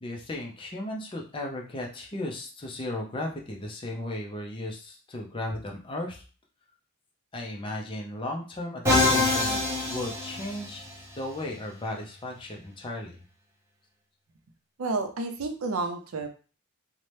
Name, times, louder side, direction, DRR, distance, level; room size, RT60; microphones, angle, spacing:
voice 1, 0.0-6.2 7.3-10.8 11.2-13.2, left 1 dB, 25° left, 1 dB, 0.5 m, -35 dB
Musical instrument, 8.9-10.9, left 2 dB, 10° right, 0.7 m, -25 dB
voice 2, 14.8-16.3, right 3 dB, 75° right, 5 dB, 0.5 m, -30 dB
2.7 x 2.1 x 3.1 m, 0.37 s
head